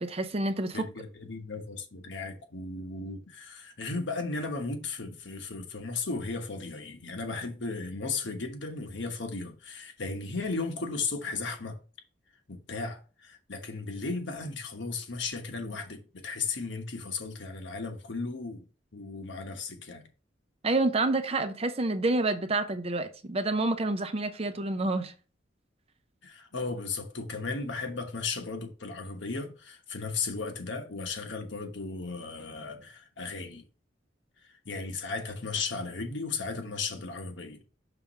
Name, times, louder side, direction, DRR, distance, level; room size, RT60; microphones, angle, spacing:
voice 1, 0.0-0.9 20.6-25.1, right 2 dB, 30° right, 0.6 m, -28 dB
voice 2, 0.7-11.8 12.5-18.7 18.9-20.1 26.2-33.6 34.6-37.6, left 4 dB, 70° left, 1.2 m, -35 dB
5.9 x 3.6 x 5.2 m
head